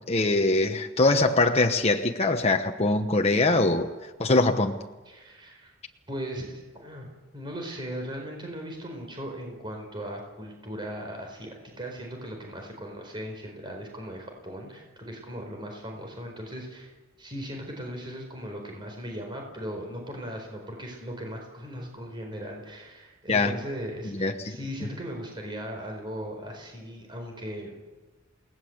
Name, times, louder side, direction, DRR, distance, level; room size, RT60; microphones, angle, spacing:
voice 1, 0.1-3.9 4.2-4.7 23.3-23.5 24.1-24.6, left 2 dB, 30° left, 4 dB, 1.1 m, -22 dB
voice 2, 5.1-5.7 6.1-7.1 7.3-16.9 17.2-27.8, equal, 25° right, 2 dB, 4.8 m, -38 dB
29.5 x 19.0 x 8.1 m, 1.2 s
head